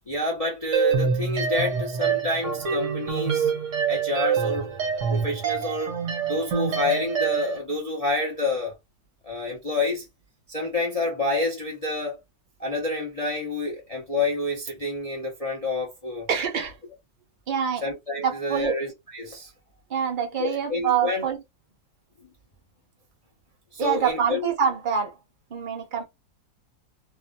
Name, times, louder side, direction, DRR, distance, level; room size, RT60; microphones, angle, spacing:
voice 1, 0.1-3.5 3.9-4.7 5.1-6.0 6.3-8.7 9.2-10.0 10.5-12.2 12.6-16.3 17.8-19.5 20.4-21.2 23.7-24.5, left 2 dB, 40° left, 0.5 m, -28 dB
sound 1, 0.7-7.6, right 6 dB, 50° right, 1.0 m, -26 dB
voice 2, 16.3-16.8 17.5-17.8 18.2-18.8 19.9-21.4 23.8-25.1 25.5-26.0, right 7 dB, 70° right, 0.4 m, -25 dB
3.0 x 2.6 x 2.2 m
omnidirectional pair, 2.0 m